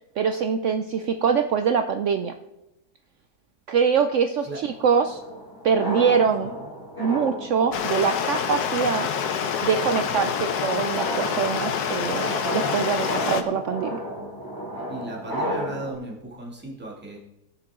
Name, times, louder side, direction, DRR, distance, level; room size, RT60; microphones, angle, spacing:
voice 1, 0.2-2.3 3.7-5.2 5.6-6.5 7.0-9.1 9.6-14.0, right 6 dB, 70° right, 8 dB, 0.7 m, -24 dB
sound 1, 4.7-15.9, equal, 15° left, 2.0 m, -34 dB
Stream, 7.7-13.4, left 7 dB, 75° left, 1.3 m, -27 dB
voice 2, 14.9-17.2, right 2 dB, 5° right, -4 dB, 2.0 m, -35 dB
18.0 x 6.8 x 3.7 m, 0.94 s
omnidirectional pair, 1.8 m